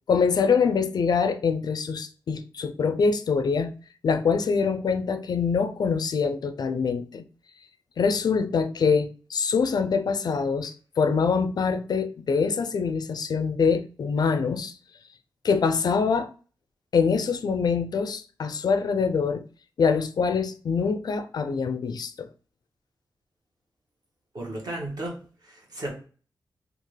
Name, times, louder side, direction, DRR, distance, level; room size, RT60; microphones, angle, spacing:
voice 1, 0.1-3.7 4.0-7.2 8.0-14.7 15.4-16.3 16.9-19.4 19.8-22.3, left 5 dB, 60° left, 0.4 m, -24 dB
voice 2, 24.3-25.9, right 1 dB, 55° right, 1.3 m, -34 dB
3.6 x 2.4 x 3.1 m
wide cardioid pair, 145°, 8 cm